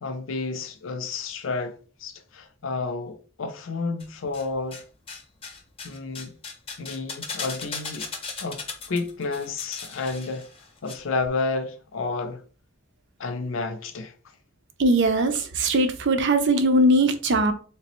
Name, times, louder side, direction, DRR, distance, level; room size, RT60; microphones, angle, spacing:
voice 1, 0.0-4.8 5.8-6.4 6.8-8.1 8.4-10.5 10.8-12.4 13.2-14.1, left 3 dB, 75° left, 0.5 m, -31 dB
sound 1, 4.0-4.8 5.1-10.9 11.2-11.3, left 5 dB, 30° left, 0.7 m, -37 dB
voice 2, 14.8-17.5, right 1 dB, 65° right, 0.6 m, -20 dB
3.3 x 2.9 x 3.0 m
head